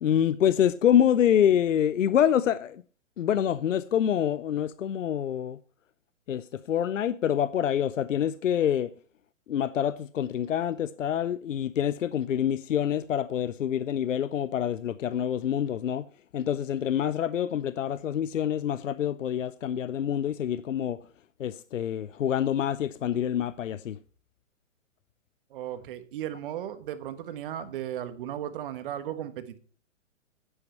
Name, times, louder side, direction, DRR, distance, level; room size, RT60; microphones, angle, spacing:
voice 1, 0.0-2.8 3.2-5.6 6.3-8.9 9.5-16.1 16.3-21.0 21.4-24.0, left 9 dB, 75° left, 0.6 m, -26 dB
voice 2, 25.5-29.6, right 11 dB, 45° right, 1.4 m, -36 dB
10.5 x 9.8 x 4.4 m
hypercardioid pair, 130°, 39 cm